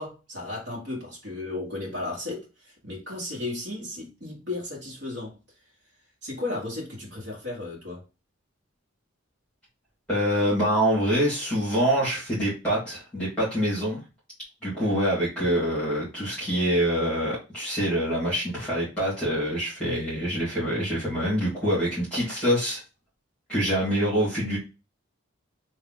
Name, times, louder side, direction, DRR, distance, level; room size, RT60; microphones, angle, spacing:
voice 1, 0.0-5.4 6.2-8.0, left 2 dB, 55° right, 1.5 m, -34 dB
voice 2, 10.1-14.0 14.6-22.8 23.5-24.6, equal, 5° left, 2.0 m, -25 dB
3.6 x 2.7 x 3.7 m
head